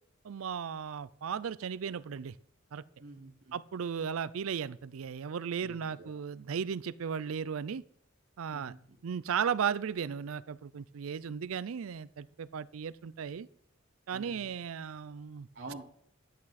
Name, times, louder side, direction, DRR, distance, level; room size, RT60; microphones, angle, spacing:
voice 1, 0.2-2.3 2.7-2.8 3.5-7.8 8.4-8.7 9.0-13.5 14.1-15.5, right 7 dB, 85° right, 18 dB, 0.4 m, -35 dB
voice 2, 3.0-3.6 5.6-6.2 8.5-8.8 14.1-14.6 15.5-15.8, right 2 dB, 55° right, -3 dB, 1.5 m, -48 dB
11.0 x 8.5 x 4.1 m, 0.67 s
head